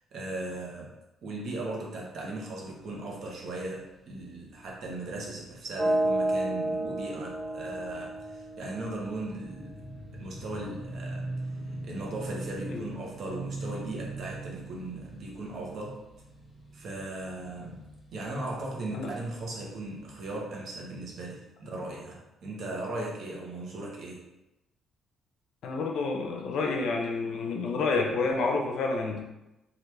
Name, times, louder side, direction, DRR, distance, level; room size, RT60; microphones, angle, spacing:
voice 1, 0.1-0.9 1.2-9.8 10.2-11.3 11.8-16.0 16.7-24.2, right 2 dB, 65° right, -2 dB, 0.9 m, -38 dB
sound 1, 2.6-19.9 20.2-20.3, right 2 dB, 30° left, 0.7 m, -43 dB
sound 2, 5.8-9.7, right 1 dB, 25° right, 0.4 m, -31 dB
voice 2, 25.6-29.2, left 3 dB, 75° left, 1 dB, 0.6 m, -29 dB
2.9 x 2.5 x 3.3 m, 0.96 s
cardioid pair, 90°, 0 cm